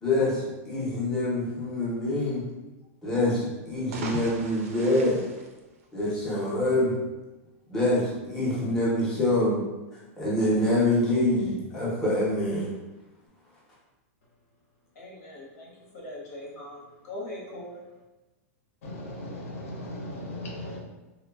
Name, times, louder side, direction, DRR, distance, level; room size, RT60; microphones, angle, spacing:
voice 1, 0.0-2.4 3.0-5.2 5.9-6.9 7.7-9.6 10.2-12.7, left 1 dB, 5° left, -8 dB, 0.5 m, -25 dB
sound 1, 3.7-6.3, right 4 dB, 80° right, 0.4 m, -39 dB
voice 2, 14.9-18.0, left 1 dB, 90° left, -4 dB, 1.0 m, -41 dB
voice 3, 18.8-20.8, left 1 dB, 70° left, -1 dB, 0.8 m, -37 dB
3.0 x 2.1 x 2.3 m, 1.1 s
supercardioid pair, 165°, 8 cm